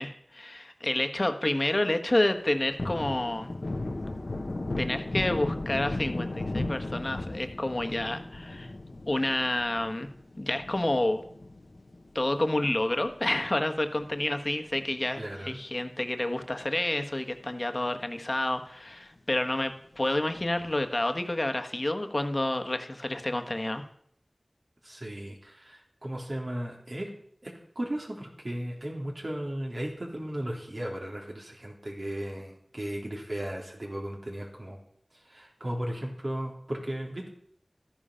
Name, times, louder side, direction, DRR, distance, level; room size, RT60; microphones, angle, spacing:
voice 1, 0.0-3.5 4.8-8.7 9.1-10.1 10.4-11.2 12.1-23.8, left 1 dB, 50° left, 6 dB, 1.3 m, -29 dB
Thunder, 2.4-13.1 13.5-13.6 13.9-15.4 15.7-15.9 16.2-17.0 17.4-17.5 17.9-18.0 20.3-20.9, left 2 dB, 80° left, 1.1 m, -36 dB
voice 2, 15.2-15.6 24.8-27.1 27.4-34.8 35.3-37.3, right 1 dB, 60° right, -1 dB, 3.5 m, -36 dB
13.0 x 10.0 x 5.7 m, 0.66 s
wide cardioid pair, 40°, 0 cm